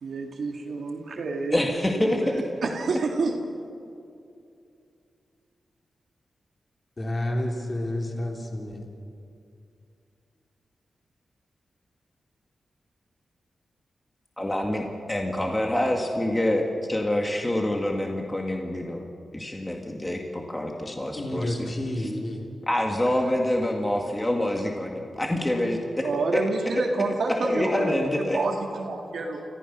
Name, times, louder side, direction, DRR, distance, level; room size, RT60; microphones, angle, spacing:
voice 1, 0.0-3.4 26.0-29.4, right 3 dB, 75° right, 2 dB, 1.9 m, -29 dB
voice 2, 1.5-2.4 14.4-19.1 19.3-21.7 22.7-26.1 27.4-28.4, left 1 dB, 15° left, 1 dB, 1.9 m, -26 dB
voice 3, 7.0-8.9 20.8-22.5 23.1-23.2, left 1 dB, 35° left, 1 dB, 3.3 m, -30 dB
30.0 x 15.0 x 6.1 m, 2.5 s
wide cardioid pair, 100°, 0 cm